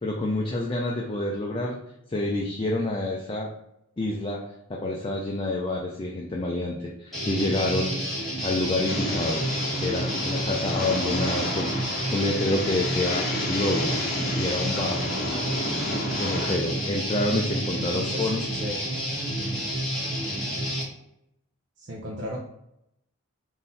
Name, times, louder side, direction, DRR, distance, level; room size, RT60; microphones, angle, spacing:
voice 1, 0.0-1.8 2.1-3.5 4.0-4.4 4.7-9.4 9.8-13.9 14.4-15.1 16.1-18.4, left 2 dB, 25° left, -2 dB, 0.4 m, -28 dB
Guitar, 7.1-20.8, equal, ahead, 1.3 m, -29 dB
sound 1, 8.9-16.5, left 1 dB, 45° left, 0.8 m, -32 dB
voice 2, 17.8-18.8 21.8-22.4, equal, 50° right, -3 dB, 0.6 m, -35 dB
3.8 x 2.6 x 4.0 m, 0.82 s
head